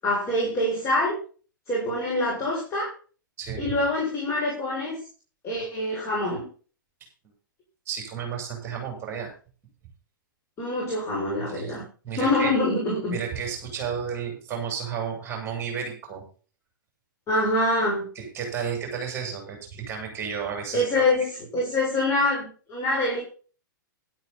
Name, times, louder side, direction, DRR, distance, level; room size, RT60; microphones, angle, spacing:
voice 1, 0.0-1.2 1.7-2.9 3.6-5.0 5.4-6.5 10.6-11.8 12.1-13.2 17.3-18.1 20.7-23.2, left 1 dB, 25° left, -3 dB, 7.1 m, -25 dB
voice 2, 7.9-9.3 11.5-11.8 12.0-12.5 13.1-16.2 18.2-21.0, right 7 dB, 20° right, 1 dB, 7.1 m, -32 dB
13.0 x 12.0 x 4.3 m, 0.39 s
figure-of-eight pair, 105°, 11 cm